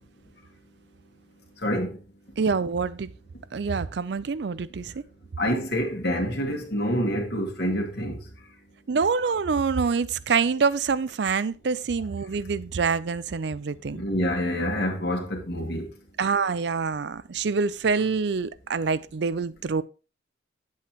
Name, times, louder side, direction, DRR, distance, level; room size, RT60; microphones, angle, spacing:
voice 1, 2.4-3.1 3.5-5.0 8.9-14.0 16.2-19.8, right 5 dB, 60° right, 0.4 m, -26 dB
voice 2, 5.4-8.2 13.9-15.9, equal, 55° left, 2.0 m, -27 dB
9.7 x 8.4 x 3.0 m
head